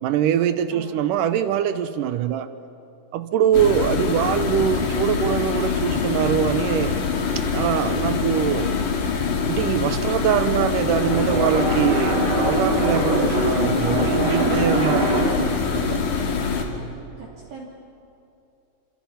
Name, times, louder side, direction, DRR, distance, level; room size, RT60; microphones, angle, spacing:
voice 1, 0.0-2.5 3.1-7.0 7.4-8.7 9.5-16.0, right 9 dB, 75° right, 11 dB, 2.2 m, -23 dB
voice 2, 0.7-1.0 3.6-3.9 10.4-10.8 17.2-17.7, right 5 dB, 55° right, -5 dB, 4.1 m, -41 dB
sound 1, 3.5-16.6, left 5 dB, 60° left, 3.5 m, -24 dB
sound 2, 10.8-15.5, right 1 dB, 35° right, 3.8 m, -24 dB
28.5 x 27.5 x 5.8 m, 2.7 s
omnidirectional pair, 4.3 m